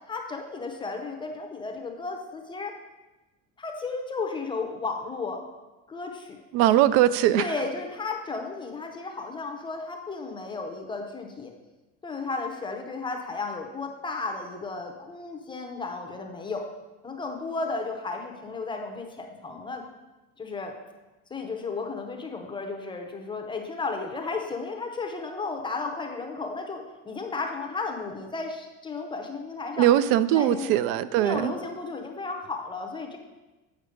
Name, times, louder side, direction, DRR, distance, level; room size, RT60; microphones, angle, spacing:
voice 1, 0.1-2.7 3.6-5.4 5.9-6.4 7.4-11.5 12.0-16.7 17.0-19.8 20.4-20.7 21.3-29.9 30.3-30.8 31.2-33.2, left 3 dB, 10° left, 3 dB, 0.5 m, -34 dB
voice 2, 6.5-7.4 29.8-31.5, right 12 dB, 85° right, 15 dB, 0.5 m, -21 dB
8.2 x 4.7 x 5.0 m, 1.1 s
cardioid pair, 170°, 40 cm